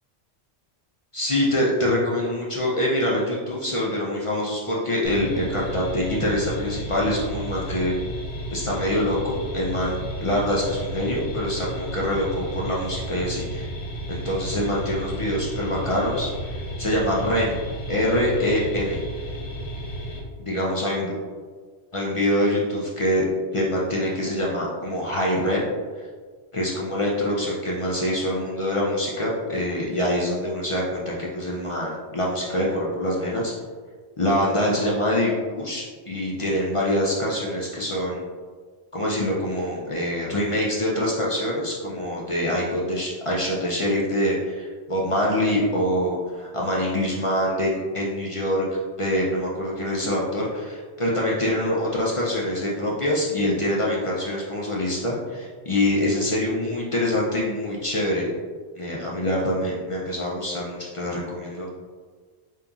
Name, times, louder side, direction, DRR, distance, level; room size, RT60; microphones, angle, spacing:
voice 1, 1.1-8.0 8.5-9.9 10.2-13.7 14.1-17.6 17.9-19.0 20.5-21.1 21.9-23.3 23.5-25.7 26.5-33.5 34.2-38.2 38.9-58.3 58.8-61.8, left 1 dB, 45° left, -4 dB, 0.4 m, -25 dB
sound 1, 5.0-20.2, equal, 80° left, 1.1 m, -33 dB
5.2 x 2.8 x 2.3 m, 1.5 s
omnidirectional pair, 1.2 m